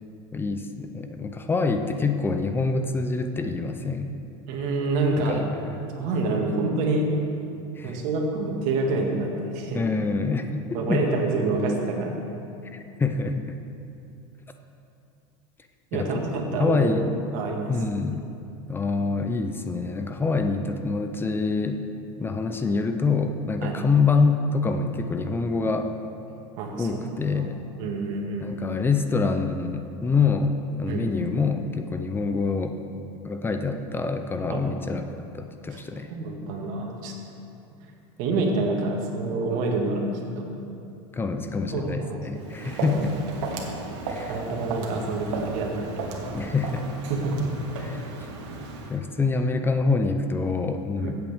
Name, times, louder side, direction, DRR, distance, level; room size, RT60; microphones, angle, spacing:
voice 1, 0.3-4.1 5.3-5.8 7.8-8.0 9.7-11.0 12.7-13.6 15.9-16.3 16.6-17.1 17.7-18.3 18.7-21.8 22.2-25.9 26.8-27.6 28.4-32.7 33.2-35.1 35.3-36.1 41.1-43.2 44.1-44.4 46.3-46.8 47.8-48.3 48.9-51.1, left 4 dB, 15° left, 7 dB, 0.5 m, -26 dB
voice 2, 4.5-5.4 5.8-7.1 7.8-9.8 10.7-12.2 15.9-16.9 17.3-17.7 23.6-23.8 26.6-27.0 27.3-27.5 27.8-28.5 30.9-31.1 34.5-34.7 35.7-35.8 36.1-37.1 38.2-40.5 41.7-42.5 42.8-43.1 44.3-46.4 47.1-47.5 51.0-51.1, right 3 dB, 60° right, 0 dB, 1.9 m, -27 dB
Walk footsteps, 42.4-49.0, right 3 dB, 80° right, 1.6 m, -35 dB
15.5 x 7.9 x 3.6 m, 2.6 s
supercardioid pair, 135°, 15 cm